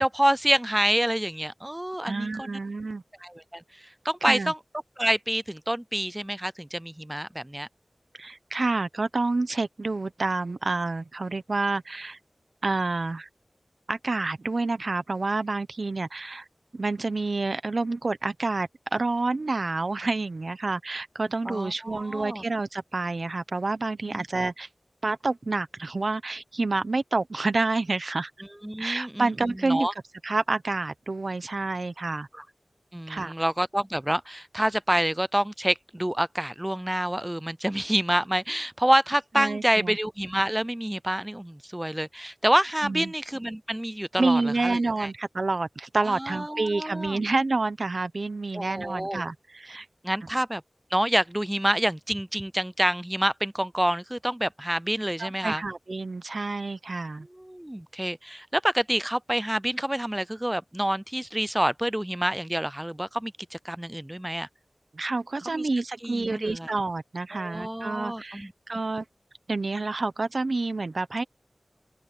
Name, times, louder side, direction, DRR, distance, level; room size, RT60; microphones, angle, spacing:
voice 1, 0.0-2.5 3.2-3.6 4.1-4.6 5.0-7.7 21.5-22.4 24.1-24.2 28.6-29.3 29.6-29.9 32.3-32.4 32.9-45.1 46.1-47.2 48.5-49.2 50.0-50.6 50.9-55.6 57.3-64.5 65.5-65.6 66.0-66.7 67.3-68.5, right 1 dB, 15° right, 0.6 m, -27 dB
voice 2, 2.0-3.0 4.2-4.5 8.2-12.2 12.6-13.3 13.9-16.4 16.7-24.7 25.0-28.3 28.8-29.9 30.2-32.3 33.1-33.3 39.4-40.0 42.8-43.1 44.2-49.9 55.2-57.3 64.9-69.0 69.5-71.2, right 3 dB, 70° right, 1.0 m, -28 dB
open air
wide cardioid pair, 50°, 0 cm